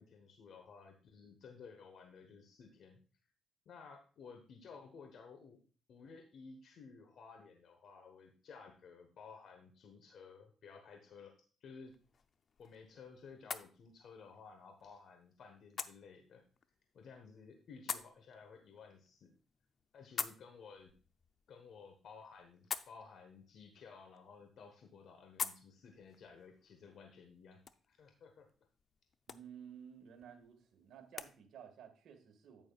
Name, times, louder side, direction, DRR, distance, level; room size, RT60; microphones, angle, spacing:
voice 1, 0.0-3.0 3.7-5.6 5.9-11.9 12.6-16.4 16.9-19.3 19.9-20.9 21.5-28.5, left 5 dB, 65° left, 5 dB, 1.2 m, -55 dB
sound 1, 11.8-31.3, left 6 dB, 50° left, 0.6 m, -49 dB
voice 2, 29.3-32.7, right 8 dB, 70° right, 3 dB, 1.7 m, -54 dB
9.1 x 8.8 x 2.4 m, 0.40 s
cardioid pair, 90°, 0 cm